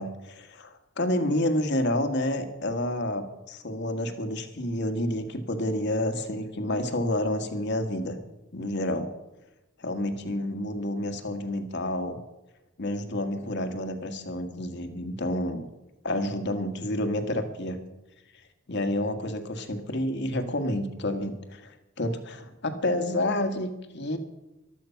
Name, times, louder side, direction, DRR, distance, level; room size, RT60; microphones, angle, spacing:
voice 1, 0.0-8.2 8.5-9.1 9.8-12.2 12.8-15.7 16.0-17.8 18.7-24.2, left 1 dB, 60° left, 7 dB, 1.7 m, -29 dB
14.5 x 12.0 x 5.8 m, 1.0 s
head